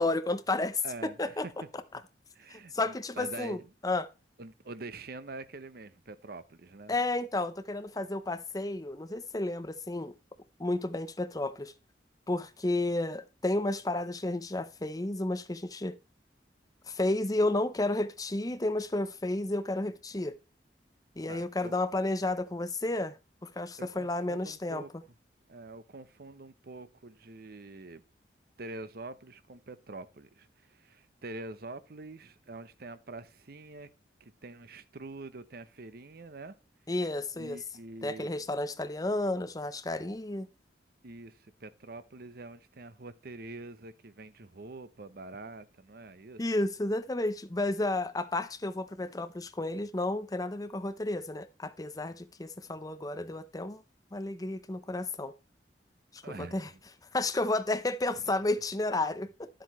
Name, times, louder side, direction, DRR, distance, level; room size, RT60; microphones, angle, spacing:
voice 1, 0.0-1.5 2.5-4.1 6.9-10.1 10.6-11.7 12.3-16.0 16.9-20.3 21.2-23.2 23.4-24.8 36.9-37.6 38.0-40.5 46.4-53.8 54.1-55.3 56.1-56.7 57.1-59.5, left 2 dB, 20° left, 0.7 m, -32 dB
voice 2, 0.8-1.4 2.3-3.6 4.4-6.9 21.3-21.7 23.8-24.9 25.5-28.0 28.6-33.9 34.2-36.5 37.4-38.3 41.0-46.4 56.2-56.8, right 2 dB, 60° right, 0.8 m, -45 dB
11.5 x 7.7 x 3.1 m
head